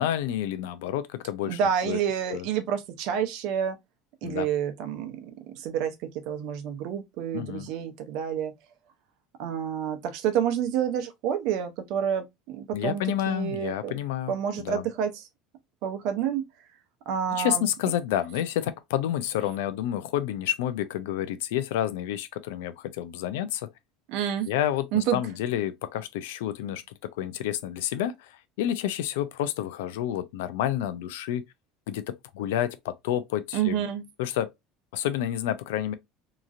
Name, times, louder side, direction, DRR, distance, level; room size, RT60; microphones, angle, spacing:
voice 1, 0.0-2.0 2.3-2.4 4.2-4.5 7.3-7.7 12.7-14.8 17.3-23.7 24.5-26.8 27.2-31.4 31.9-33.8 34.2-34.5 34.9-35.9, left 11 dB, 90° left, 0.4 m, -29 dB
voice 2, 1.5-3.8 4.2-8.5 9.4-14.0 14.3-15.3 15.8-16.4 17.1-17.6 24.1-24.5 24.9-25.2 33.5-34.1, right 9 dB, 60° right, 0.7 m, -29 dB
2.9 x 2.5 x 2.5 m
cardioid pair, 140°, 0 cm